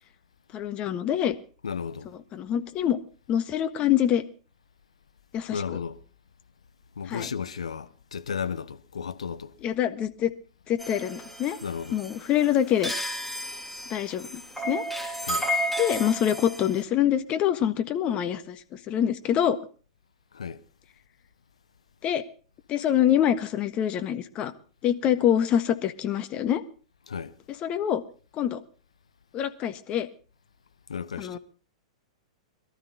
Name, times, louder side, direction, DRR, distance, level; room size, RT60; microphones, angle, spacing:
voice 1, 0.5-1.3 2.3-3.0 3.3-4.2 5.3-5.8 7.1-7.3 9.6-10.3 10.7-11.6 11.9-12.9 13.9-14.8 15.8-19.6 22.0-22.2 22.7-24.5 24.8-26.6 27.6-28.0 28.3-28.6 29.3-30.1 31.2-31.4, left 10 dB, 35° left, 1.5 m, -25 dB
voice 2, 1.6-2.1 5.5-6.0 7.0-9.5 11.6-12.0 15.2-15.5 20.3-20.6 27.1-27.3 30.9-31.4, left 6 dB, 75° left, 0.9 m, -34 dB
sound 1, 10.8-16.8, equal, 5° left, 3.1 m, -32 dB
22.5 x 13.0 x 4.1 m
figure-of-eight pair, 100°, 3 cm